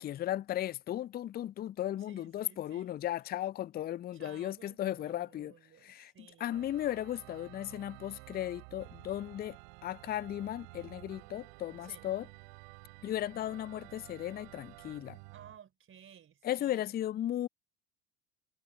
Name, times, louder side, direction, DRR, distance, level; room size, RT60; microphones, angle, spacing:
voice 1, 0.0-5.5 5.8-6.1 6.4-9.6 9.8-12.3 13.0-15.2 16.4-17.5, left 12 dB, 25° left, 0.6 m, -36 dB
voice 2, 1.9-2.9 4.1-6.5 11.8-12.1 15.3-16.9, right 9 dB, 35° right, 4.5 m, -56 dB
Organ, 6.5-15.6, right 38 dB, 60° right, 3.0 m, -52 dB
figure-of-eight pair, 60°, 36 cm